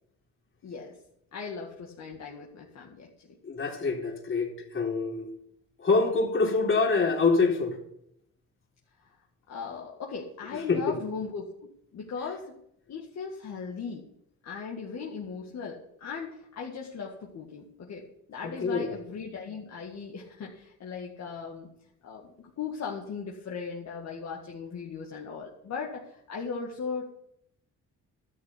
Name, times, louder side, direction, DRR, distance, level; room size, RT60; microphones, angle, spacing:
voice 1, 0.6-1.0 1.3-3.1 9.5-11.5 11.9-12.5 12.9-14.1 14.4-21.7 22.0-27.0, left 5 dB, 60° left, -1 dB, 2.1 m, -38 dB
voice 2, 3.4-5.3 5.8-7.8 10.5-11.0 18.4-19.0, left 4 dB, 45° left, 0 dB, 3.8 m, -26 dB
12.5 x 6.7 x 8.3 m, 0.74 s
cardioid pair, 90°, 30 cm